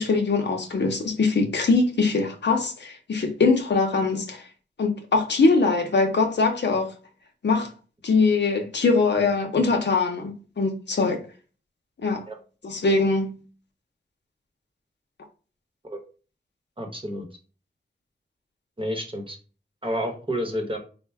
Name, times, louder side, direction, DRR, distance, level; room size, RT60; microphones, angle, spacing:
voice 1, 0.0-4.4 4.8-6.9 7.4-7.7 8.0-11.2 12.0-12.2 12.6-13.3, left 3 dB, 75° left, 0.6 m, -22 dB
voice 2, 16.8-17.3 18.8-19.4 19.8-20.8, equal, 30° right, 0.8 m, -29 dB
4.3 x 2.0 x 3.4 m
wide cardioid pair, 90°, 18 cm